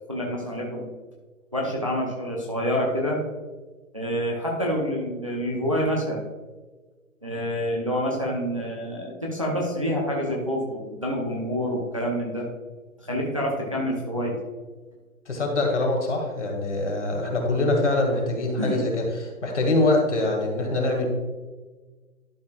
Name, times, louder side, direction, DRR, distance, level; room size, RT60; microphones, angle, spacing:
voice 1, 0.1-0.8 1.5-3.2 3.9-6.2 7.2-12.4 13.0-14.3 18.6-18.8, equal, 25° right, -2 dB, 0.7 m, -27 dB
voice 2, 15.3-21.1, left 2 dB, 50° left, 1 dB, 2.2 m, -24 dB
11.5 x 6.3 x 2.4 m, 1.3 s
hypercardioid pair, 175°, 43 cm